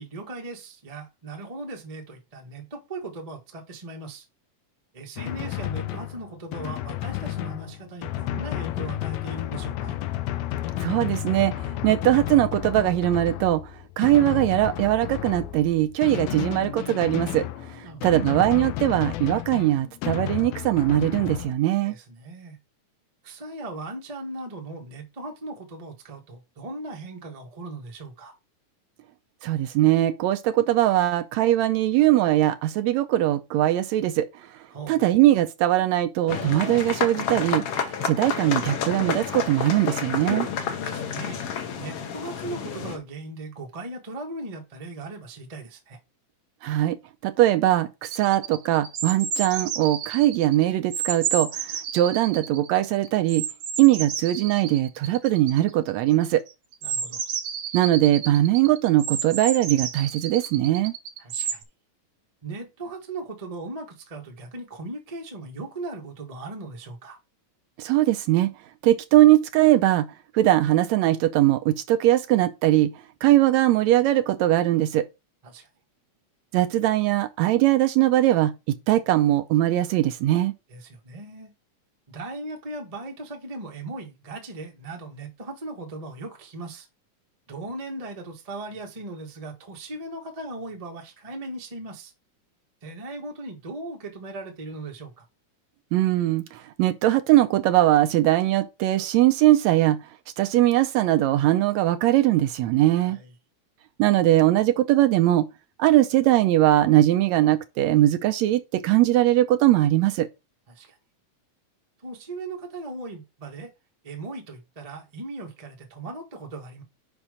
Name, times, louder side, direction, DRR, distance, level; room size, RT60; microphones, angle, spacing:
voice 1, 0.0-4.2 4.9-10.0 17.8-18.1 21.8-22.6 23.2-28.3 34.7-35.0 40.8-41.5 41.8-46.0 56.8-57.2 61.2-61.6 62.4-67.2 75.4-75.7 80.7-81.5 82.1-86.9 87.5-92.1 92.8-95.2 103.0-103.3 110.7-110.9 112.0-113.7 114.0-116.8, right 2 dB, 30° right, 0.6 m, -38 dB
Drum, 5.2-21.5, left 14 dB, 90° left, 2.0 m, -32 dB
voice 2, 10.8-11.5 11.8-13.6 14.0-17.4 17.7-22.0 29.4-34.3 34.9-37.6 38.0-40.5 46.6-47.0 47.2-53.4 53.8-56.4 57.7-60.9 67.8-68.5 68.8-70.1 70.3-72.9 73.2-75.1 76.5-78.5 78.9-80.5 95.9-100.0 100.4-103.2 104.0-105.5 105.8-110.3, right 14 dB, 80° right, 1.8 m, -20 dB
sound 1, 36.3-43.0, left 7 dB, 60° left, 1.9 m, -30 dB
sound 2, 48.0-50.6 50.9-61.6, right 7 dB, 65° right, 1.4 m, -31 dB
5.8 x 5.4 x 5.0 m
omnidirectional pair, 3.4 m